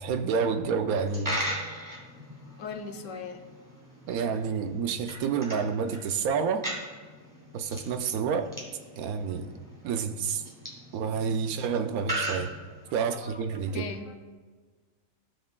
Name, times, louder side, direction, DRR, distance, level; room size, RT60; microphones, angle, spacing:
voice 1, 0.0-1.4 4.1-6.7 7.5-8.5 9.0-9.6 9.8-10.4 10.9-12.5 12.9-13.9, right 6 dB, 80° right, 9 dB, 1.1 m, -29 dB
Coin (dropping), 0.9-13.2, equal, 15° right, 1.6 m, -39 dB
voice 2, 2.6-3.4 12.3-12.4 13.0-14.1, left 5 dB, 65° left, 6 dB, 1.0 m, -40 dB
15.0 x 5.5 x 2.3 m, 1.5 s
omnidirectional pair, 1.5 m